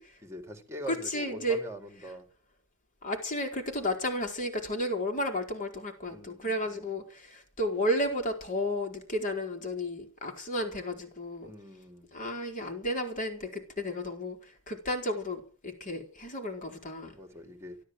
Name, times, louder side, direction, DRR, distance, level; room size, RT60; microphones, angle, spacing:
voice 1, 0.0-2.3 6.1-7.0 11.4-12.2 17.1-17.8, right 1 dB, 15° right, 5 dB, 3.4 m, -44 dB
voice 2, 0.9-1.6 3.0-11.5 12.1-17.2, left 1 dB, 40° left, 3 dB, 4.5 m, -33 dB
14.0 x 12.5 x 7.8 m, 0.40 s
head